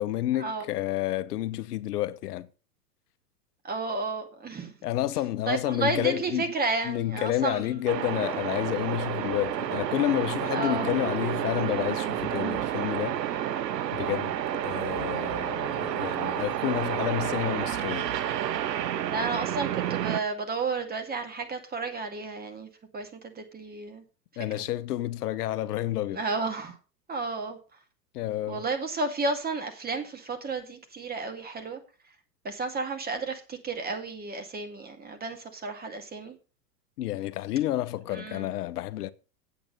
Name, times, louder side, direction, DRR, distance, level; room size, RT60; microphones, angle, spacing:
voice 1, 0.0-2.5 4.8-6.5 6.8-13.2 13.9-14.3 14.6-18.1 24.4-26.2 28.1-28.6 37.0-39.1, left 14 dB, 70° left, 1.0 m, -30 dB
voice 2, 3.6-4.8 5.5-7.8 10.5-10.9 19.1-22.7 22.9-24.0 26.1-26.8 27.1-27.6 28.5-31.8 32.4-36.4 38.1-38.5, right 3 dB, 20° right, 2.2 m, -32 dB
sound 1, 7.9-20.2, right 11 dB, 80° right, 0.9 m, -30 dB
8.7 x 8.0 x 5.3 m
hypercardioid pair, 105°, 48 cm